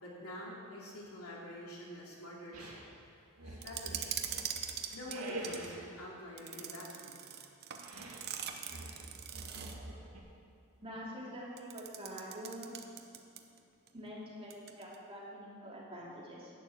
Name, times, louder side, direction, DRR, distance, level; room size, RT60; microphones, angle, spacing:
voice 1, 0.0-2.7 3.4-4.1 4.9-7.2, left 1 dB, 85° left, -4 dB, 3.1 m, -47 dB
sound 1, 2.5-2.9 3.4-4.6 5.1-5.9 7.8-8.3 8.7-10.2, right 1 dB, 90° right, 2.4 m, -45 dB
sound 2, 3.6-5.7 6.4-9.9 11.6-13.6 13.9-14.0 14.5-15.0, right 8 dB, 50° right, 0.8 m, -42 dB
voice 2, 10.8-12.7 13.9-16.5, equal, 25° right, -6 dB, 3.0 m, -46 dB
11.0 x 6.9 x 8.8 m, 2.4 s
head